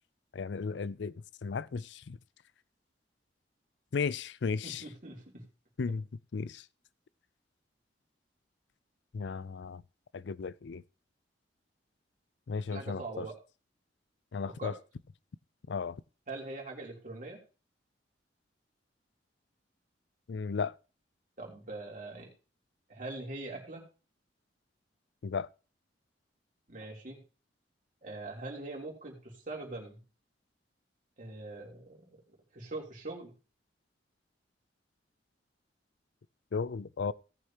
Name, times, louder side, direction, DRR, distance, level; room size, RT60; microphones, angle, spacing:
voice 1, 0.3-1.1 1.4-2.2 3.9-4.8 5.8-6.0 6.3-6.6 9.1-9.8 10.1-10.8 12.5-13.3 14.3-14.7 15.7-16.0 20.3-20.7 25.2-25.5 36.5-37.1, left 5 dB, 80° left, 0.4 m, -34 dB
voice 2, 4.6-5.4 12.7-13.3 14.6-14.7 16.3-17.4 21.4-22.3 22.9-23.8 26.7-27.2 28.0-30.0 31.2-32.2 32.5-33.3, right 2 dB, 45° right, 3.4 m, -42 dB
18.0 x 6.5 x 2.9 m
head